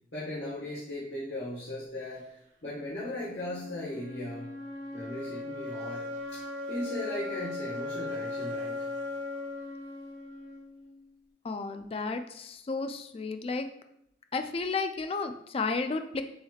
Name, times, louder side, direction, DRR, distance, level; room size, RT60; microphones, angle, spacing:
voice 1, 0.1-2.3 2.6-4.5 4.9-6.4 6.7-8.9, left 1 dB, 75° left, -9 dB, 1.5 m, -37 dB
sound 1, 3.1-11.1, left 2 dB, 85° right, 1.3 m, -38 dB
voice 2, 11.4-13.7 14.3-16.2, left 4 dB, 35° left, 8 dB, 0.3 m, -32 dB
6.9 x 3.2 x 2.4 m, 0.77 s
head